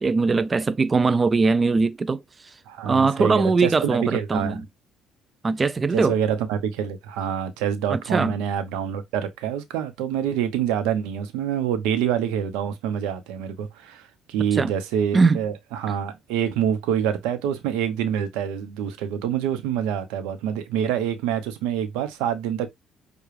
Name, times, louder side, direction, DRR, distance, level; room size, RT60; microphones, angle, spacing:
voice 1, 0.0-2.5 2.8-4.6 5.4-6.2 7.9-8.3 14.5-14.7 15.1-15.4, right 4 dB, 30° right, 0.4 m, -21 dB
voice 2, 2.7-4.6 5.9-14.0 14.3-22.7, right 9 dB, 85° right, 0.8 m, -26 dB
6.8 x 2.3 x 3.3 m
supercardioid pair, 75°, 0 cm